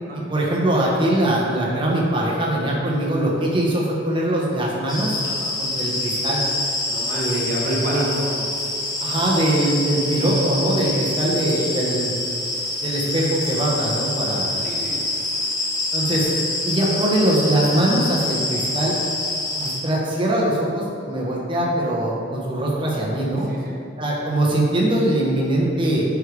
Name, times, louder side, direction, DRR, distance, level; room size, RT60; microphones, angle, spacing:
voice 1, 0.1-5.2 5.6-6.4 7.1-8.1 9.0-12.1 12.8-14.6 15.9-16.3 16.6-19.0 19.6-23.5 24.0-26.0, right 1 dB, 25° right, -4 dB, 1.2 m, -22 dB
sound 1, 4.9-19.8, left 2 dB, 20° left, 1.2 m, -26 dB
voice 2, 5.2-5.5 6.9-8.5 10.9-11.1 14.6-15.1 23.5-23.8, equal, 50° right, -4 dB, 1.4 m, -33 dB
8.9 x 4.8 x 3.5 m, 2.5 s
head